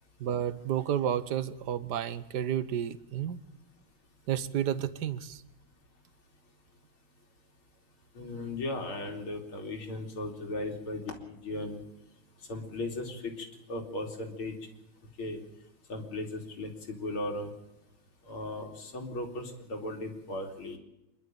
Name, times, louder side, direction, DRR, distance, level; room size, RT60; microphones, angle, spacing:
voice 1, 0.2-3.4 4.3-5.4, right 10 dB, 60° right, 15 dB, 1.4 m, -31 dB
voice 2, 8.2-11.8 12.5-14.5 15.2-15.4 15.9-17.5 18.3-20.8, left 2 dB, 85° left, 3 dB, 3.8 m, -37 dB
26.0 x 11.5 x 9.1 m, 0.92 s
omnidirectional pair, 2.3 m